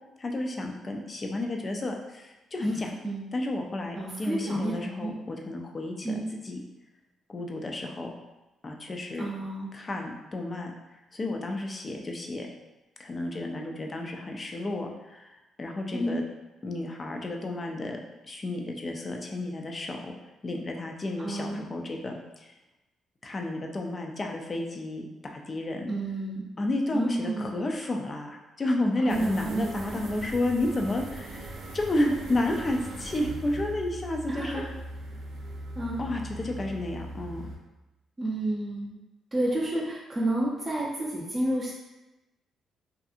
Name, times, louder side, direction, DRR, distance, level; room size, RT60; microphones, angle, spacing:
voice 1, 0.2-2.9 3.3-6.6 7.3-8.1 8.6-9.3 9.7-10.7 11.1-12.5 13.0-16.2 16.6-20.2 20.4-22.5 23.2-25.9 26.6-34.6 36.0-37.4, left 1 dB, 35° left, 2 dB, 0.4 m, -31 dB
voice 2, 2.6-3.2 4.0-5.1 6.0-6.2 9.2-9.7 15.9-16.2 21.2-21.7 25.9-26.4 26.9-27.6 29.0-30.0 34.3-34.7 35.8-36.0 38.2-39.0 39.3-41.7, right 1 dB, 15° right, -7 dB, 0.5 m, -31 dB
sound 1, 29.1-37.6, right 2 dB, 75° right, 0.4 m, -40 dB
2.6 x 2.4 x 2.4 m, 1.0 s
cardioid pair, 90°, 0 cm